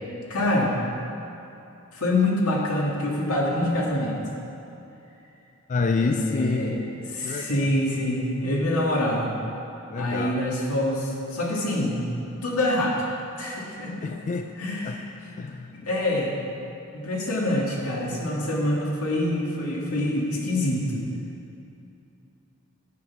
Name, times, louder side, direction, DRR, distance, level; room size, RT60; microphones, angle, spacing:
voice 1, 0.3-0.8 1.9-4.2 6.0-6.7 7.1-9.3 10.0-12.1 12.4-13.0 13.4-14.1 14.6-15.0 15.7-16.3 16.9-21.0, left 1 dB, 85° left, -3 dB, 2.1 m, -25 dB
voice 2, 5.7-7.8 9.9-10.5 14.0-14.5 14.8-15.0 15.4-15.7, left 4 dB, 35° left, 6 dB, 0.4 m, -28 dB
10.5 x 8.2 x 5.9 m, 2.8 s
head